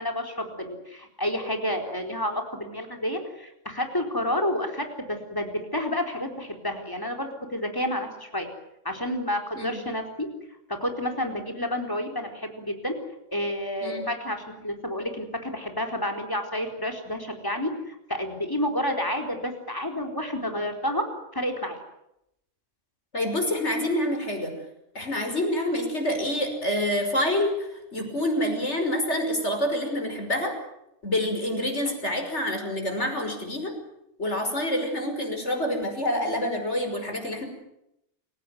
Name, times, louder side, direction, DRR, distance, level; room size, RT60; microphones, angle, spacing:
voice 1, 0.0-8.5 8.8-10.3 10.7-12.9 13.3-21.1 21.3-21.8, left 1 dB, 15° left, 3 dB, 4.3 m, -30 dB
voice 2, 23.1-24.5 24.9-30.5 31.0-33.7 34.2-37.4, left 1 dB, 65° left, 4 dB, 6.1 m, -27 dB
28.5 x 16.5 x 9.5 m, 0.83 s
omnidirectional pair, 1.2 m